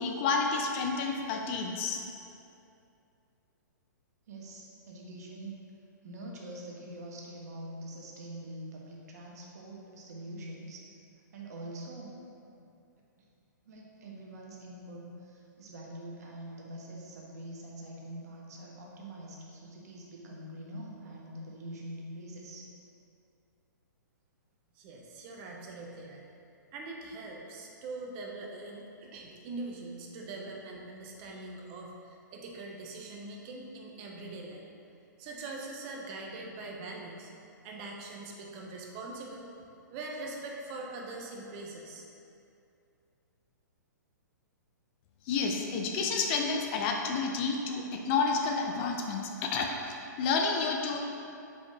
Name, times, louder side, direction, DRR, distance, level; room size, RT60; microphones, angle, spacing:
voice 1, 0.0-2.0 45.3-51.0, left 4 dB, 35° left, 2 dB, 0.6 m, -30 dB
voice 2, 4.3-5.5 6.0-10.8 11.3-12.2 13.6-22.7, right 1 dB, 55° right, -2 dB, 1.2 m, -44 dB
voice 3, 24.7-26.2 26.7-34.6 35.2-37.3 37.6-39.5 39.9-42.0, right 2 dB, 35° right, 0 dB, 0.9 m, -42 dB
5.1 x 4.9 x 4.1 m, 2.6 s
figure-of-eight pair, 120°, 10 cm